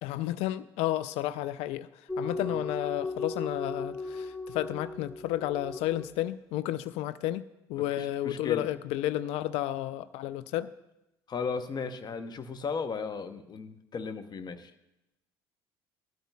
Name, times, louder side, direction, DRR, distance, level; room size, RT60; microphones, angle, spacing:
voice 1, 0.0-1.9 2.2-7.4 7.7-10.7, left 14 dB, 60° left, 0.4 m, -32 dB
sound 1, 2.1-6.2, left 3 dB, 5° left, 0.6 m, -37 dB
voice 2, 8.0-8.7 11.3-14.7, left 5 dB, 35° left, 0.8 m, -35 dB
18.5 x 12.5 x 2.3 m
hypercardioid pair, 60°, 12 cm